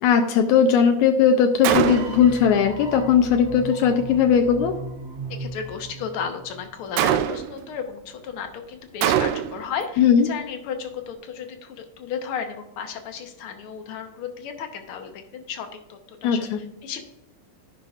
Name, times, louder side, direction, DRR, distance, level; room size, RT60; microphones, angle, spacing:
voice 1, 0.0-4.7 10.0-10.3 16.2-16.6, left 7 dB, 85° left, 5 dB, 2.0 m, -18 dB
Gunshot gunfire, 1.6-2.3 7.0-7.6 9.0-9.7, right 11 dB, 80° right, 1.4 m, -22 dB
sound 1, 1.7-6.8, right 3 dB, 45° right, 1.6 m, -37 dB
voice 2, 5.3-16.5 16.8-17.1, left 7 dB, 65° left, 6 dB, 1.4 m, -34 dB
14.5 x 5.6 x 2.4 m, 0.86 s
omnidirectional pair, 3.3 m